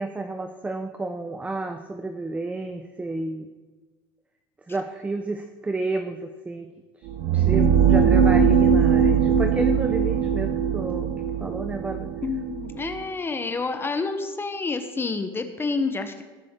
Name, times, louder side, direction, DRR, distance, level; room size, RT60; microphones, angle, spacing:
voice 1, 0.0-3.5 4.7-6.7 7.3-11.1 11.4-12.1, right 2 dB, 10° right, 7 dB, 0.6 m, -31 dB
sound 1, 7.1-13.0, right 7 dB, 60° right, 1.2 m, -20 dB
voice 2, 12.2-16.2, left 4 dB, 20° left, 8 dB, 0.8 m, -28 dB
18.0 x 6.8 x 3.7 m, 1.3 s
supercardioid pair, 115°, 12 cm